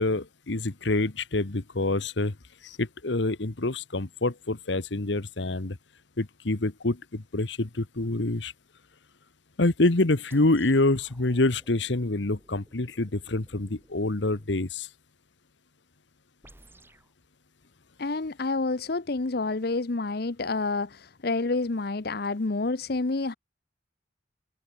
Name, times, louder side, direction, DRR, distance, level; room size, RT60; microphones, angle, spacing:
voice 1, 0.0-2.3 2.6-5.8 6.2-8.5 9.6-14.9, left 2 dB, 70° left, 1.3 m, -26 dB
sound 1, 10.3-14.6 16.4-17.1, right 1 dB, 10° right, 7.6 m, -57 dB
voice 2, 18.0-23.4, left 3 dB, 55° left, 0.8 m, -28 dB
head